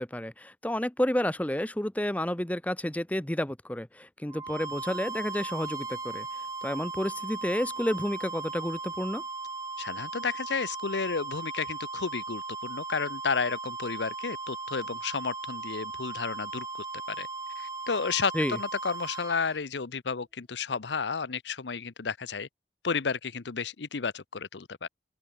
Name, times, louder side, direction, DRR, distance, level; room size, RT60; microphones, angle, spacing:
voice 1, 0.0-6.3 6.6-9.2 18.3-18.6, left 1 dB, 10° left, 0.8 m, -30 dB
sound 1, 4.3-19.6, right 4 dB, 20° right, 1.0 m, -37 dB
voice 2, 9.8-17.3 17.6-22.5 22.8-24.9, left 5 dB, 85° left, 0.8 m, -32 dB
open air
head